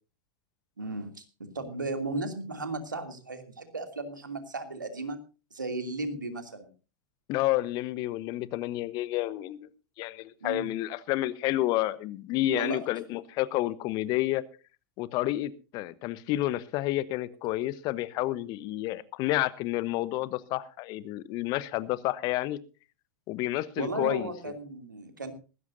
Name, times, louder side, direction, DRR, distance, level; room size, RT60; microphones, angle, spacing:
voice 1, 0.8-5.2 5.5-6.7 10.4-10.7 12.5-12.8 23.8-25.3, right 2 dB, 80° right, 6 dB, 2.8 m, -35 dB
voice 2, 7.3-9.7 10.0-14.4 15.0-22.6 23.3-24.3, left 16 dB, 40° left, 17 dB, 1.1 m, -30 dB
19.5 x 16.0 x 2.7 m, 0.33 s
figure-of-eight pair, 90°, 10 cm